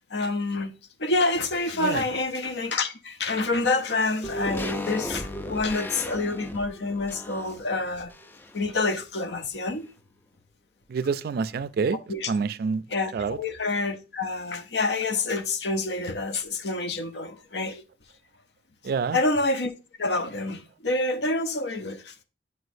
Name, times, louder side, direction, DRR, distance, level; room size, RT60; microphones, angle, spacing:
voice 1, 0.1-0.7 1.0-8.1 8.5-9.9 12.1-12.3 12.9-17.8 19.1-19.7 20.0-22.1, left 2 dB, 70° left, 0.7 m, -27 dB
sound 1, 4.2-8.7 9.0-9.1, left 1 dB, 10° left, 0.4 m, -36 dB
voice 2, 10.9-12.0 12.3-12.8 13.1-13.4 18.8-19.2, right 5 dB, 60° right, 0.3 m, -27 dB
8.1 x 4.8 x 2.6 m
head